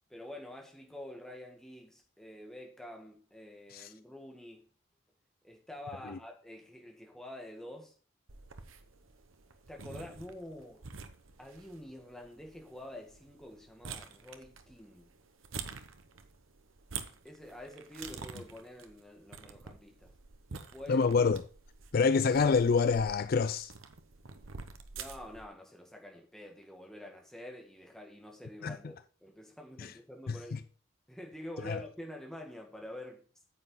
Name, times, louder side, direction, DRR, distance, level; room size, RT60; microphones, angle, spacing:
voice 1, 0.1-4.6 5.4-7.9 9.7-10.8 11.4-15.1 17.2-20.1 20.5-21.1 24.9-30.6 31.1-33.2, left 1 dB, 5° left, 1.9 m, -47 dB
sound 1, 8.3-25.4, right 5 dB, 90° right, 1.0 m, -48 dB
voice 2, 20.9-21.4 21.9-23.7 28.6-28.8 29.8-29.9 30.3-30.6 31.6-31.8, left 5 dB, 50° left, 0.4 m, -27 dB
9.5 x 7.7 x 3.8 m
head